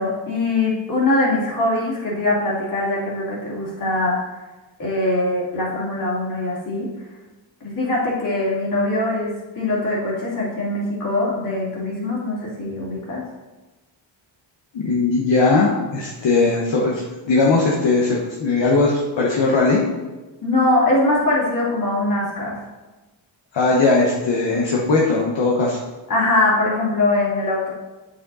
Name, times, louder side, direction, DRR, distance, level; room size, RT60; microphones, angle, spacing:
voice 1, 0.0-4.2 4.8-6.9 7.6-13.2 20.4-22.6 26.1-27.7, left 2 dB, 45° left, -5 dB, 3.0 m, -22 dB
voice 2, 14.7-19.8 23.5-25.8, left 3 dB, 70° left, -3 dB, 1.4 m, -19 dB
8.1 x 6.6 x 4.2 m, 1.2 s
wide cardioid pair, 135°, 46 cm